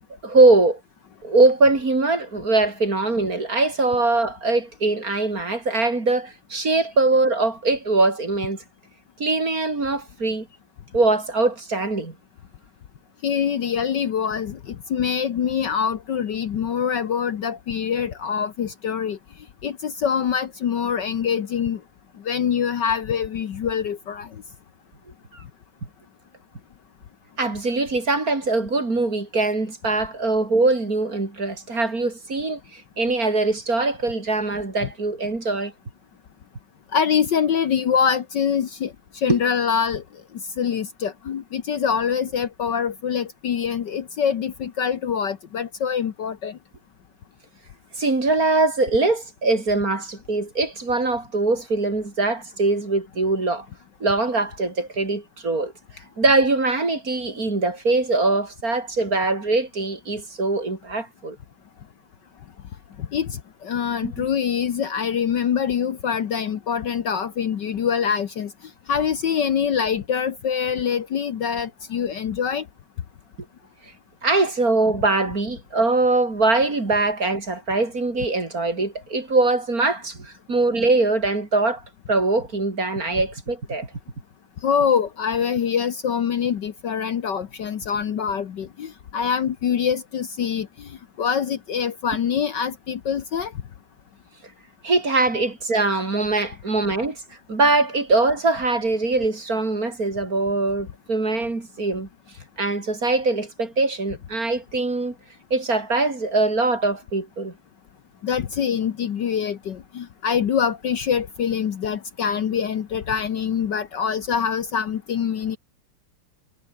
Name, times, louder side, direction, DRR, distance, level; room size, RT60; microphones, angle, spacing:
voice 1, 0.2-0.8 1.2-8.6 9.2-10.5 10.9-12.2 25.3-25.4 27.4-35.7 39.3-39.4 48.0-53.7 54.0-55.7 56.2-61.4 64.0-64.2 74.2-81.8 82.1-83.9 94.8-97.2 97.5-102.1 102.6-105.1 105.5-107.5, right 3 dB, 40° right, 4.4 m, -22 dB
voice 2, 13.2-19.2 19.6-21.8 22.2-24.4 36.9-40.0 40.3-46.6 63.0-68.5 68.9-72.7 84.6-93.5 108.2-115.6, left 7 dB, 55° left, 1.7 m, -24 dB
omnidirectional pair, 2.4 m